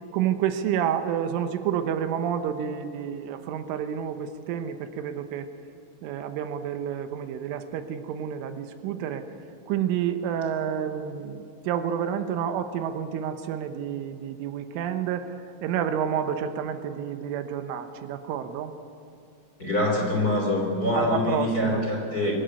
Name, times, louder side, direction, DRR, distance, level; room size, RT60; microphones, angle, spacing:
voice 1, 0.1-5.5 6.0-9.3 9.7-15.3 15.6-18.7 20.9-21.8, right 9 dB, 80° right, 9 dB, 3.5 m, -29 dB
voice 2, 19.6-22.3, left 1 dB, 25° left, 0 dB, 2.8 m, -25 dB
24.5 x 14.5 x 9.5 m, 2.7 s
omnidirectional pair, 5.6 m